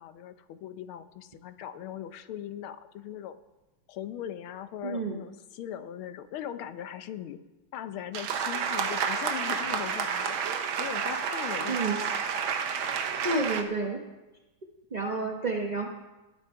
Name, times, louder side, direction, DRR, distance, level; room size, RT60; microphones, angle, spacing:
voice 1, 0.0-3.4 3.9-7.4 7.7-10.5 10.8-12.1 15.4-15.5, left 10 dB, 80° left, 11 dB, 1.6 m, -40 dB
voice 2, 4.8-5.2 11.7-12.0 13.2-14.0 14.9-15.9, right 3 dB, 55° right, 1 dB, 0.4 m, -30 dB
sound 1, 8.1-13.6, right 6 dB, 75° right, 1.8 m, -30 dB
18.5 x 8.7 x 4.6 m, 1.1 s
omnidirectional pair, 2.3 m